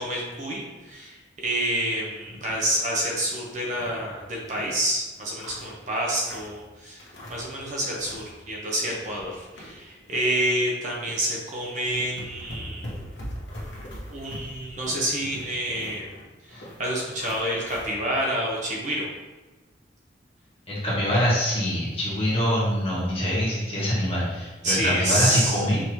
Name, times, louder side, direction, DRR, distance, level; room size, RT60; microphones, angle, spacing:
voice 1, 0.0-12.9 14.1-16.1 16.4-19.1 24.6-25.6, right 1 dB, 40° right, -3 dB, 0.8 m, -28 dB
sound 1, 2.2-2.7 3.1-3.2 3.5-4.7 5.2-6.6 7.0-7.6 7.8-8.3 8.6-10.2 10.6-10.8 11.5-11.6 11.8-17.9, equal, 80° left, 1.1 m, -41 dB
sound 2, 9.2-9.3 10.1-10.2 11.1-11.2 12.0-12.1 12.9-13.0 13.8-13.9 14.8-14.9 15.7-15.8 16.6-16.7 17.5-17.6, equal, 50° left, 0.9 m, -45 dB
voice 2, 20.7-25.8, equal, 30° left, -7 dB, 1.4 m, -24 dB
5.5 x 2.9 x 3.1 m, 1.2 s
head